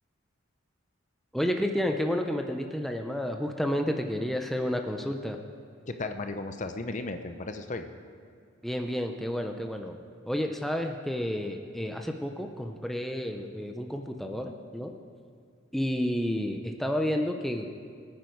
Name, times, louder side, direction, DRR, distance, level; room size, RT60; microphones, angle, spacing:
voice 1, 1.3-5.4 8.6-10.0 10.3-14.9 15.7-17.7, equal, ahead, 4 dB, 0.6 m, -30 dB
voice 2, 5.9-7.9, left 2 dB, 35° left, 7 dB, 0.7 m, -35 dB
23.0 x 9.5 x 4.6 m, 2.2 s
head